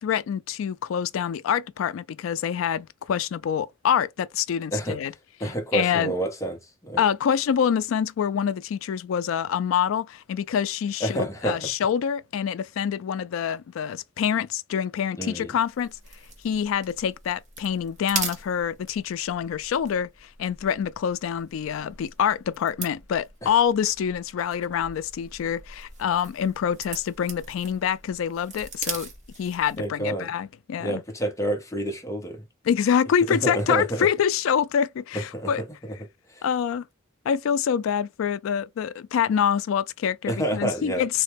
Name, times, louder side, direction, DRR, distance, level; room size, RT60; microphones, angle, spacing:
voice 1, 0.0-5.1 5.7-6.1 7.0-11.2 11.4-16.0 16.4-29.1 29.4-31.0 32.7-35.6 36.4-36.8 37.3-41.2, left 8 dB, 80° left, 0.3 m, -26 dB
voice 2, 5.4-7.0 11.0-11.7 15.2-15.5 23.4-23.5 29.8-30.3 30.8-32.4 33.3-34.1 35.1-35.5 35.9-36.0 36.3-36.4 40.3-41.1, right 1 dB, 15° left, 0.7 m, -28 dB
sound 1, 15.6-29.9, right 4 dB, 40° right, 1.0 m, -40 dB
3.2 x 2.1 x 3.3 m
head